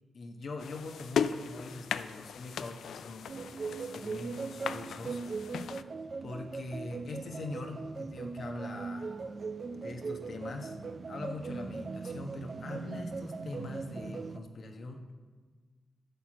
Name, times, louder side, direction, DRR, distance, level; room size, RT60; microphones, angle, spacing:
voice 1, 0.1-5.2 6.2-9.1 9.7-15.1, left 3 dB, 60° left, 4 dB, 1.2 m, -43 dB
sound 1, 0.6-5.8, left 7 dB, 85° left, 0.4 m, -37 dB
sound 2, 3.3-14.4, right 4 dB, 45° right, 0.5 m, -39 dB
12.0 x 4.6 x 7.6 m, 1.5 s
cardioid pair, 85°, 0 cm